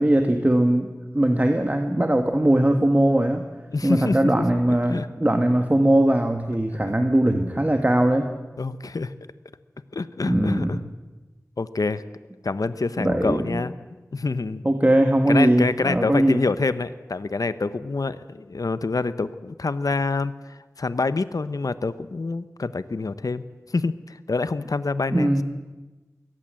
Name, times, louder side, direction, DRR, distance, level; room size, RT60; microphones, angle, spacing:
voice 1, 0.0-3.4 3.8-8.3 10.2-10.8 13.0-13.6 14.6-16.4 25.1-25.4, right 1 dB, 25° right, 5 dB, 1.6 m, -20 dB
voice 2, 3.7-5.1 8.6-9.1 9.9-10.8 11.6-12.0 12.4-13.7 14.1-14.6 15.3-25.4, left 3 dB, 85° left, 13 dB, 0.9 m, -27 dB
23.0 x 17.5 x 7.7 m, 1.2 s
wide cardioid pair, 45°, 6 cm